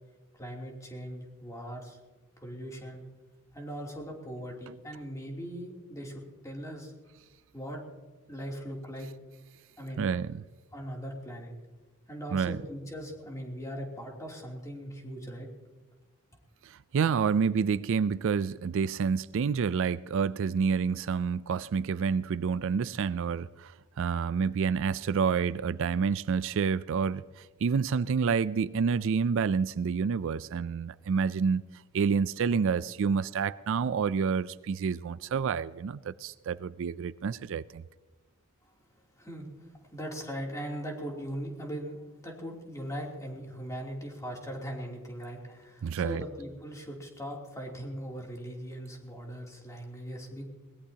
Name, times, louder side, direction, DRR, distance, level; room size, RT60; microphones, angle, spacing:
voice 1, 0.3-2.0 2.4-3.0 3.5-6.9 7.5-7.8 8.3-9.1 9.8-10.1 10.7-11.5 12.1-15.5 39.2-50.5, equal, 15° left, 3.0 m, -40 dB
voice 2, 10.0-10.4 12.3-12.6 16.6-23.7 24.0-31.6 31.9-37.8 45.8-46.2, right 6 dB, 65° right, 0.4 m, -28 dB
22.0 x 19.0 x 2.9 m
head